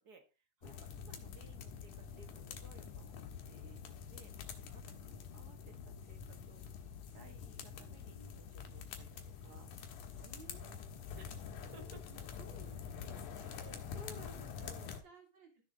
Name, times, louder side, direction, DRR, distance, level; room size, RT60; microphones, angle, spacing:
voice 1, 0.0-6.6 7.1-9.7 11.1-12.1 13.4-15.0, right 3 dB, 50° right, 6 dB, 1.1 m, -59 dB
sound 1, 0.6-15.0, left 7 dB, 75° left, 2.8 m, -47 dB
sound 2, 2.3-2.9 3.9-4.6 6.0-6.6 8.0-8.7 10.0-10.7 11.5-12.3 13.3-14.5, right 1 dB, 15° right, 2.0 m, -67 dB
voice 2, 10.1-10.9 12.1-13.3 14.1-14.5 15.0-15.6, right 4 dB, 35° right, 1 dB, 3.5 m, -60 dB
13.5 x 6.6 x 3.9 m, 0.31 s
omnidirectional pair, 3.7 m